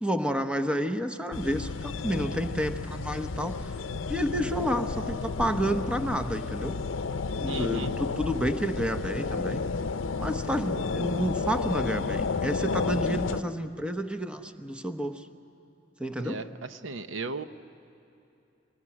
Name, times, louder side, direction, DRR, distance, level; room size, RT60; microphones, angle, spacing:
voice 1, 0.0-3.7 4.1-6.8 7.3-9.6 10.2-15.3 16.0-16.4, equal, 5° right, 8 dB, 0.9 m, -30 dB
sound 1, 1.3-13.4, left 4 dB, 85° left, 0.6 m, -32 dB
voice 2, 7.5-7.9 16.2-17.4, right 4 dB, 80° right, 10 dB, 0.8 m, -36 dB
25.0 x 20.0 x 9.9 m, 2.8 s
head